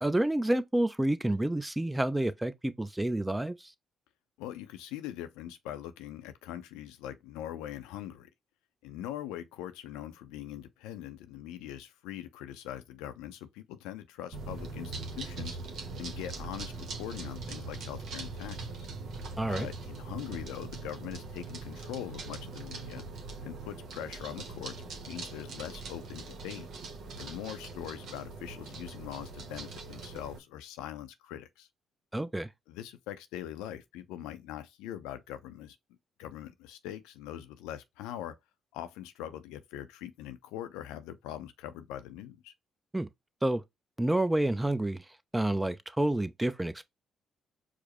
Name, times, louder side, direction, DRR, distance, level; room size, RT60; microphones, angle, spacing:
voice 1, 0.0-3.7 19.4-19.7 32.1-32.5 42.9-43.1 43.4-43.6 44.0-45.0 45.3-46.8, right 1 dB, 10° right, 0.5 m, -29 dB
voice 2, 4.4-8.3 8.8-15.6 16.0-18.7 19.5-23.1 23.4-24.8 25.0-26.7 27.2-31.7 32.7-35.8 36.2-38.4 38.7-42.5, left 11 dB, 85° left, 0.5 m, -42 dB
sound 1, 14.3-30.4, right 3 dB, 70° right, 0.9 m, -42 dB
4.8 x 2.0 x 2.9 m
supercardioid pair, 55°, 0 cm